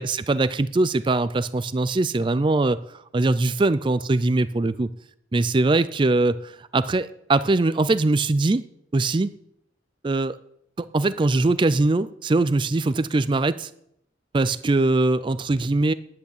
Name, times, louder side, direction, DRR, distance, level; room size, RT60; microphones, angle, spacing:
voice 1, 0.0-2.8 3.1-4.9 5.3-8.6 8.9-9.3 10.0-10.4 10.9-13.7 14.3-15.9, right 2 dB, 25° right, 14 dB, 0.4 m, -22 dB
10.5 x 8.0 x 8.5 m, 0.74 s
head